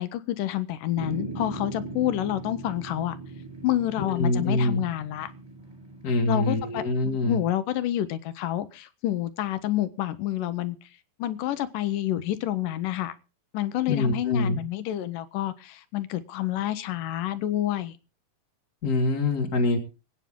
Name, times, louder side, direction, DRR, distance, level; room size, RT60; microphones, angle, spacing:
voice 1, 0.0-3.2 3.6-5.3 6.3-10.8 11.2-13.1 13.5-17.9, left 13 dB, 75° left, 2.3 m, -28 dB
sound 1, 1.0-7.4, right 3 dB, 10° right, 1.5 m, -40 dB
voice 2, 4.0-4.8 6.0-7.4 13.9-14.6 18.8-19.8, left 2 dB, 40° left, 1.4 m, -25 dB
25.0 x 9.0 x 3.7 m
omnidirectional pair, 4.2 m